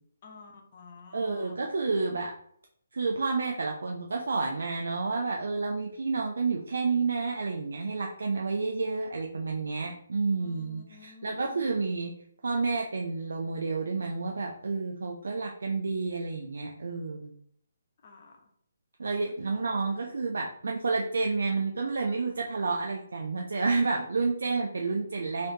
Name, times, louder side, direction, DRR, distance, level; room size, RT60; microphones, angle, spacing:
voice 1, 0.2-1.6 10.4-11.7 18.0-18.3 19.3-20.2, left 4 dB, 40° left, 2 dB, 0.8 m, -51 dB
voice 2, 1.1-2.3 2.9-12.1 12.4-17.3 19.0-25.5, right 4 dB, 65° right, 1 dB, 0.4 m, -30 dB
3.2 x 2.8 x 2.7 m, 0.66 s
figure-of-eight pair, 140°, 0 cm